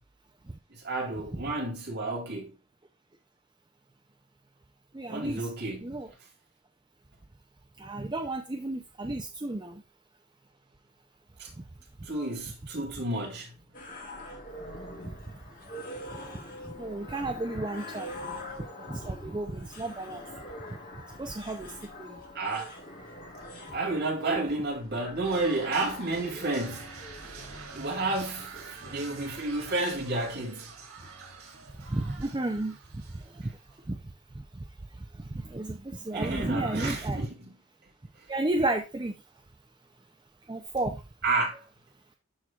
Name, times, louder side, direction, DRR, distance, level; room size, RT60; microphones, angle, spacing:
voice 1, 0.8-2.5 5.1-5.9 11.4-11.5 12.1-13.5 22.3-22.7 23.7-26.9 27.7-30.7 36.1-37.5 41.2-41.5, right 2 dB, 50° right, 2.8 m, -31 dB
voice 2, 4.9-5.5 5.8-6.1 7.8-9.8 16.8-18.3 18.9-20.2 21.2-21.7 22.0-22.2 31.9-33.0 33.4-33.5 33.9-34.0 35.3-37.3 38.3-39.1 40.5-41.0, right 2 dB, 20° right, 0.5 m, -32 dB
sound 1, 13.7-30.7, left 1 dB, 40° left, 1.6 m, -44 dB
sound 2, 25.2-33.8, right 4 dB, 80° right, 3.0 m, -46 dB
13.0 x 4.5 x 2.4 m
head